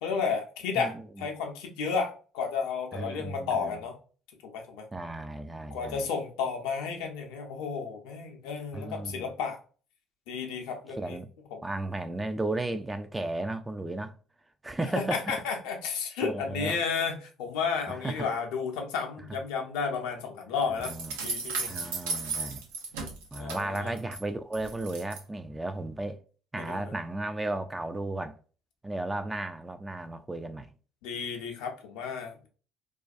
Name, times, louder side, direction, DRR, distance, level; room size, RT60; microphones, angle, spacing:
voice 1, 0.0-4.0 4.5-4.9 5.7-9.6 10.3-11.2 11.5-11.6 15.0-20.9 21.2-21.8 23.4-24.0 26.6-26.9 31.0-32.5, left 5 dB, 65° left, 0.5 m, -32 dB
voice 2, 0.8-1.3 2.9-3.8 4.9-6.1 8.7-9.3 11.0-11.3 11.6-14.2 14.6-15.3 16.2-16.8 17.9-18.3 20.8-21.1 21.7-22.6 23.3-26.2 26.5-28.4 28.8-30.7, right 2 dB, 15° right, 0.3 m, -34 dB
sound 1, 20.8-24.2 24.5-25.2, right 4 dB, 75° right, 0.5 m, -35 dB
2.4 x 2.2 x 2.4 m
figure-of-eight pair, 55°, 0 cm